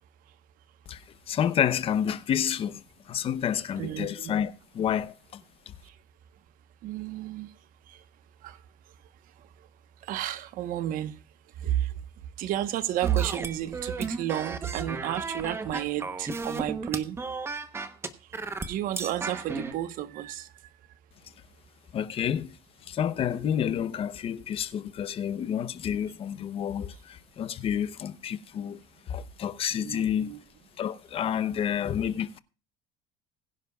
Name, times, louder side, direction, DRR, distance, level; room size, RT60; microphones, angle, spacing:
voice 1, 1.3-2.8 3.1-5.1 21.9-22.5 22.9-28.8 29.1-30.4 30.8-32.4, left 9 dB, 30° left, 0.8 m, -29 dB
voice 2, 3.8-4.3 6.8-7.5 8.4-8.5 10.1-11.1 11.6-11.8 12.4-17.2 18.6-20.5 29.8-30.4, right 12 dB, 50° right, 1.1 m, -31 dB
sound 1, 13.0-19.7, right 4 dB, 15° right, 0.9 m, -34 dB
21.0 x 10.5 x 2.3 m
cardioid pair, 160°, 18 cm